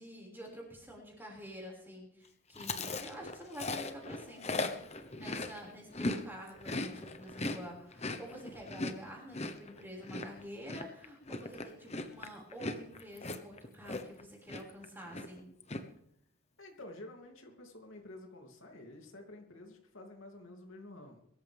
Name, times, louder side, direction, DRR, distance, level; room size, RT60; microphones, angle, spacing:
voice 1, 0.0-15.5, equal, 10° right, -2 dB, 5.9 m, -48 dB
Chewing mastication, 2.6-6.2 6.5-14.2 14.5-14.8 15.1-15.8, left 2 dB, 30° left, 1.2 m, -38 dB
voice 2, 16.6-21.2, left 1 dB, 65° left, 2 dB, 3.0 m, -50 dB
23.5 x 14.0 x 3.6 m, 0.73 s
head